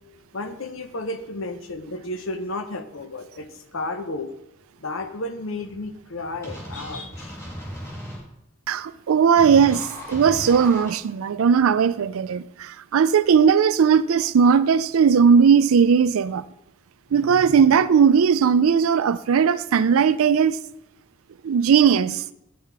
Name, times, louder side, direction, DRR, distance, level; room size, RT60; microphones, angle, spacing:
voice 1, 0.3-4.3 4.8-7.4 17.2-17.7 22.0-22.2, left 2 dB, 65° left, 0.8 m, -33 dB
sound 1, 6.4-8.2 9.4-10.9, equal, 15° left, 2.2 m, -36 dB
voice 2, 8.7-16.4 17.1-20.6 21.4-22.2, right 6 dB, 75° right, 0.4 m, -18 dB
9.5 x 5.7 x 4.6 m
head